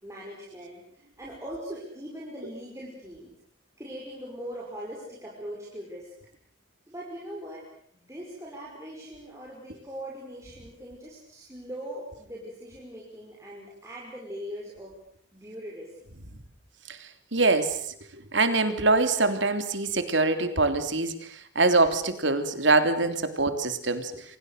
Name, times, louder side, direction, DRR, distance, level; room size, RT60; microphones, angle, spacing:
voice 1, 0.0-3.3 3.8-6.1 6.9-7.7 7.9-15.0 15.3-16.0, equal, 15° right, -4 dB, 5.7 m, -41 dB
voice 2, 17.3-17.8 18.3-24.2, right 3 dB, 70° right, 9 dB, 3.3 m, -24 dB
29.0 x 25.5 x 6.7 m, 0.62 s
head